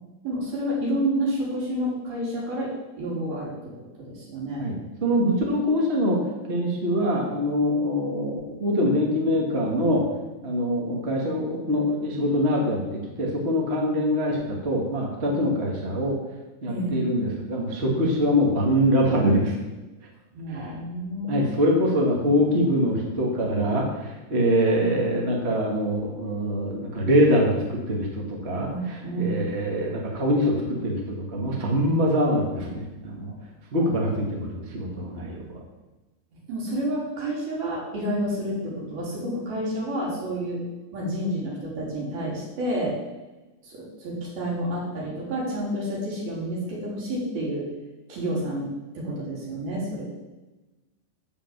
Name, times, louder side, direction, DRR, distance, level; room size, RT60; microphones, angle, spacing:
voice 1, 0.2-3.7 4.1-4.6 16.7-17.0 20.3-21.5 28.7-29.5 33.8-33.9 36.5-40.6 40.9-43.0 43.6-47.7 48.1-48.7 49.0-50.1, right 1 dB, 60° right, -4 dB, 5.3 m, -29 dB
voice 2, 5.0-6.2 6.5-10.0 10.4-16.2 16.6-19.5 20.5-20.7 21.3-28.7 29.2-33.3 33.7-35.4, equal, 25° right, -1 dB, 1.3 m, -24 dB
14.0 x 5.7 x 7.4 m, 1.1 s
omnidirectional pair, 5.0 m